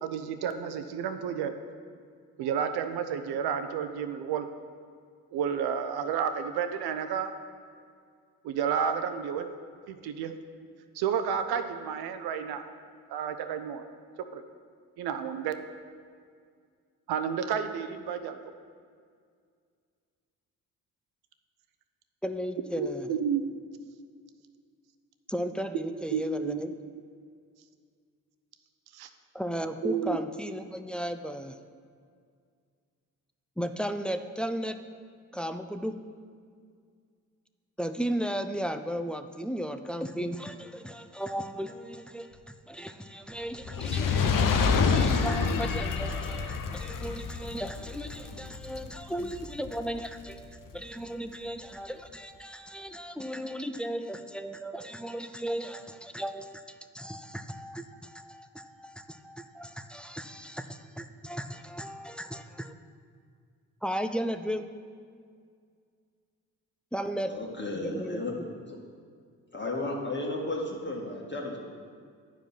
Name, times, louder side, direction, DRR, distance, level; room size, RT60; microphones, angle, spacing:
voice 1, 0.0-1.5 2.4-4.5 5.3-7.3 8.4-9.5 9.9-10.3 10.9-12.6 13.1-13.8 14.3-14.4 15.0-15.5 17.1-18.4 22.8-23.4 26.1-26.6 28.9-29.1 29.8-30.2, right 7 dB, 60° right, 9 dB, 0.8 m, -31 dB
voice 2, 22.2-23.1 25.3-26.7 29.3-31.6 33.6-34.8 35.3-35.9 37.8-62.7 63.8-64.6 66.9-67.3 67.7-68.5, equal, ahead, 8 dB, 0.5 m, -35 dB
Fire, 43.6-50.1 50.7-50.8, left 5 dB, 50° left, 0.9 m, -28 dB
voice 3, 67.2-68.3 69.5-71.6, left 2 dB, 25° left, -2 dB, 1.8 m, -33 dB
10.5 x 4.9 x 5.8 m, 2.1 s
hypercardioid pair, 45°, 43 cm